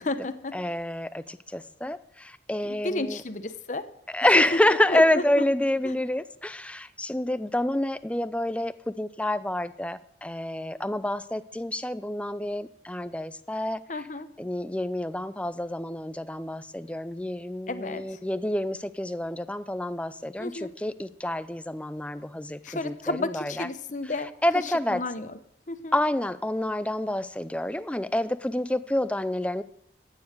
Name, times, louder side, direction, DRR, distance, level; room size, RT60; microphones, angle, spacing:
voice 1, 0.0-0.6 2.6-3.9 4.3-4.4 4.9-5.0 5.4-5.5 13.9-14.3 17.7-18.2 20.4-20.7 22.6-24.3 24.6-25.4 25.7-25.9, left 2 dB, 45° left, 10 dB, 0.9 m, -32 dB
voice 2, 0.5-3.2 4.1-13.8 14.4-23.7 24.4-25.0 25.9-29.6, left 1 dB, 5° left, 14 dB, 0.4 m, -28 dB
14.5 x 9.4 x 6.5 m, 0.75 s
head